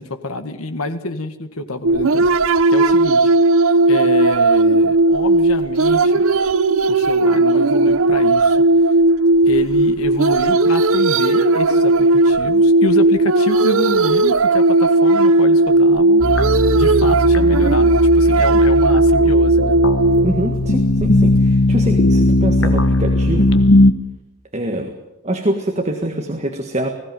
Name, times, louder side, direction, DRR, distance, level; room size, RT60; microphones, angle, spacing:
voice 1, 0.0-3.3 3.9-6.2 6.9-8.6 9.5-16.2 16.7-19.8, left 2 dB, 85° left, 8 dB, 1.8 m, -27 dB
sound 1, 1.8-21.4, right 2 dB, 70° right, 0.7 m, -15 dB
sound 2, 16.2-23.9, left 2 dB, 60° left, 1.3 m, -17 dB
voice 2, 20.2-23.5 24.5-24.9 25.2-26.9, right 1 dB, 30° right, 4 dB, 1.7 m, -24 dB
20.0 x 16.0 x 9.3 m, 0.98 s
head